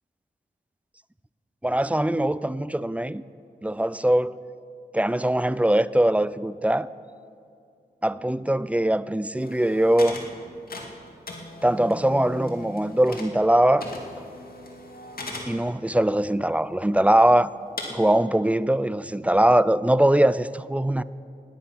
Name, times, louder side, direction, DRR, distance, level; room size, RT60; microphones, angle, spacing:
voice 1, 1.6-3.2 3.6-4.4 4.9-6.9 8.0-10.2 11.6-13.9 15.5-17.5 17.9-21.0, right 1 dB, 10° right, 0.4 m, -21 dB
sound 1, 9.4-10.3 10.6-13.5 13.8-15.6 16.1-16.2 16.8-16.9 17.8-17.9, left 2 dB, 60° left, 2.3 m, -38 dB
16.0 x 10.5 x 5.9 m
cardioid pair, 55°, 17 cm